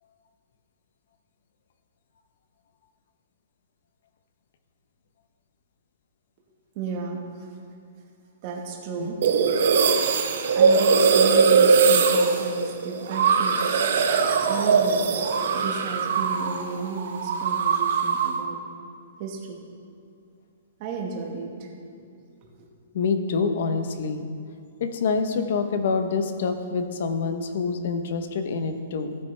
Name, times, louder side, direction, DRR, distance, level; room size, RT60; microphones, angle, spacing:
voice 1, 6.7-7.5 8.4-9.2 10.5-13.8 14.5-15.1 15.5-18.6 19.2-19.6 20.8-21.7 22.6-22.7, right 5 dB, 30° right, 1 dB, 1.4 m, -33 dB
sound 1, 9.2-16.6 16.9-18.4, right 5 dB, 55° right, 0.9 m, -21 dB
voice 2, 22.9-24.3 24.8-29.2, left 4 dB, 50° left, 8 dB, 0.8 m, -26 dB
15.0 x 9.1 x 3.3 m, 2.4 s
hypercardioid pair, 175°, 0 cm